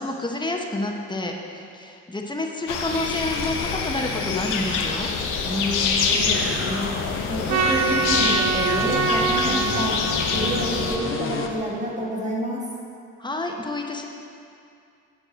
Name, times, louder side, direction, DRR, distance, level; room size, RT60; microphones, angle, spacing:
voice 1, 0.0-5.1 13.2-14.1, left 2 dB, 15° left, 2 dB, 0.9 m, -29 dB
sound 1, 2.7-11.0, left 5 dB, 85° left, 0.9 m, -26 dB
sound 2, 2.9-11.6, left 4 dB, 45° left, 0.9 m, -32 dB
voice 2, 5.4-6.9 7.3-10.0 10.3-12.6, right 1 dB, 25° right, -4 dB, 2.0 m, -28 dB
Trumpet, 7.5-11.9, right 5 dB, 70° right, 0.8 m, -26 dB
9.2 x 4.7 x 6.3 m, 2.4 s
cardioid pair, 90°, 30 cm